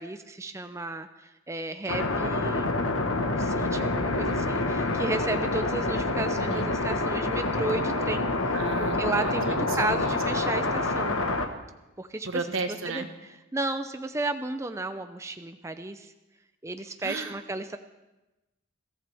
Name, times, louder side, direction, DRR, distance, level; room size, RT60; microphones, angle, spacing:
voice 1, 0.0-2.8 3.4-8.6 9.0-11.2 12.0-12.3 12.8-13.0 13.5-16.1 16.6-17.8, right 2 dB, 15° right, 8 dB, 0.5 m, -33 dB
sound 1, 1.9-11.5, left 2 dB, 90° left, 1.3 m, -27 dB
voice 2, 4.1-4.5 6.5-6.8 8.5-10.2 12.2-13.1 17.0-17.4, right 3 dB, 85° right, 6 dB, 1.4 m, -34 dB
22.0 x 14.0 x 3.5 m, 1.0 s
head